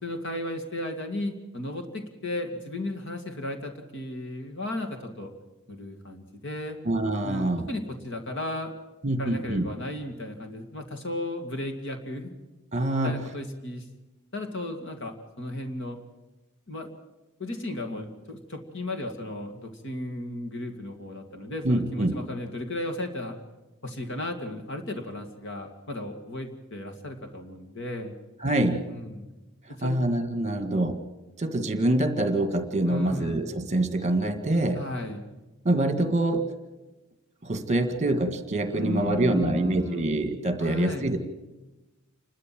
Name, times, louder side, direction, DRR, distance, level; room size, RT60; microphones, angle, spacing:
voice 1, 0.0-5.3 5.7-6.8 7.2-8.7 9.2-12.3 13.0-13.8 14.3-16.0 16.7-17.0 17.4-23.4 23.8-28.2 28.9-29.3 29.7-30.0 32.9-33.4 34.7-35.2 38.7-40.1 40.6-41.1, left 1 dB, 55° left, 5 dB, 2.4 m, -35 dB
voice 2, 6.9-7.7 9.0-9.7 12.7-13.2 21.6-22.2 28.4-28.9 29.7-31.0 31.4-34.8 35.7-36.5 37.4-41.2, right 1 dB, 30° right, 8 dB, 1.8 m, -25 dB
28.5 x 13.0 x 7.8 m, 1.1 s
head